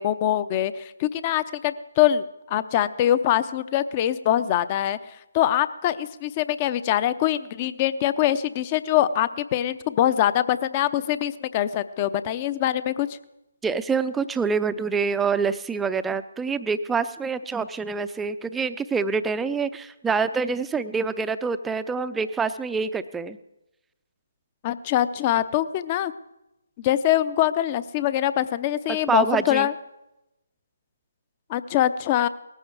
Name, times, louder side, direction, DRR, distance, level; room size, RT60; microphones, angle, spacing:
voice 1, 0.0-5.0 5.3-13.1 24.6-26.1 26.8-29.7 31.5-32.3, left 12 dB, 30° left, 15 dB, 0.7 m, -23 dB
voice 2, 13.6-23.4 29.1-29.7, right 5 dB, 5° right, 11 dB, 0.6 m, -26 dB
19.0 x 14.5 x 4.7 m, 0.92 s
figure-of-eight pair, 145°, 0 cm